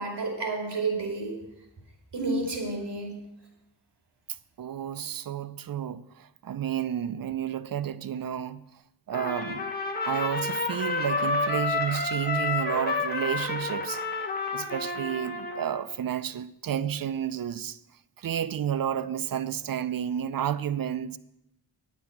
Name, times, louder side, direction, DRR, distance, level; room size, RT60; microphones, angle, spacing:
voice 1, 0.0-1.4 2.1-3.2, right 3 dB, 80° right, 2.7 m, -30 dB
voice 2, 4.6-8.6 9.1-9.7 10.0-14.0 14.5-17.8 18.2-21.2, right 9 dB, 55° right, 0.6 m, -31 dB
Trumpet, 9.1-15.8, left 3 dB, 25° left, 1.4 m, -30 dB
9.3 x 8.2 x 5.9 m
wide cardioid pair, 75°, 41 cm